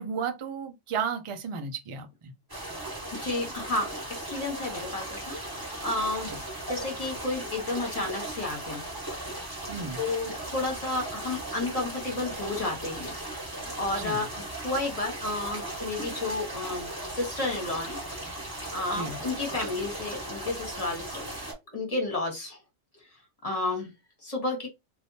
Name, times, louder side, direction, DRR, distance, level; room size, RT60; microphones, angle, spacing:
voice 1, 0.0-2.3 6.3-6.4 9.7-10.0 14.0-14.2 18.9-19.2, right 6 dB, 40° right, 0.4 m, -33 dB
sound 1, 2.5-21.5, right 1 dB, 15° right, 1.5 m, -37 dB
voice 2, 3.2-6.3 6.7-8.8 10.0-13.1 13.8-18.0 18.3-18.4 18.7-21.3 21.7-22.6 23.4-23.9 24.2-24.7, left 2 dB, 30° left, 1.4 m, -32 dB
3.4 x 2.6 x 2.7 m
omnidirectional pair, 1.3 m